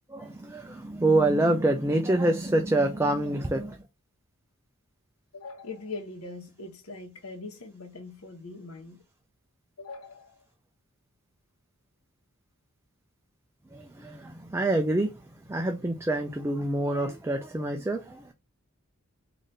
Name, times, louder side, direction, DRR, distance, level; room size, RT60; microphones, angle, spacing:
voice 1, 0.1-3.8 13.7-18.3, right 1 dB, 10° right, 0.4 m, -26 dB
voice 2, 5.3-9.0 9.8-10.4, left 3 dB, 85° left, 1.1 m, -41 dB
4.0 x 2.6 x 3.2 m
head